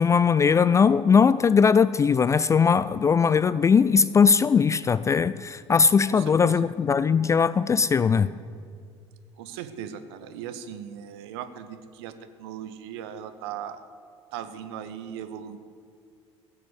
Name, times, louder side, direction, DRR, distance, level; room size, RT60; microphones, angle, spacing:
voice 1, 0.0-8.3, left 6 dB, 20° left, 16 dB, 0.3 m, -20 dB
voice 2, 6.1-6.7 9.4-12.1 12.4-13.9 14.3-15.6, right 9 dB, 65° right, 10 dB, 0.9 m, -38 dB
15.5 x 7.8 x 8.1 m, 2.2 s
figure-of-eight pair, 60°, 15 cm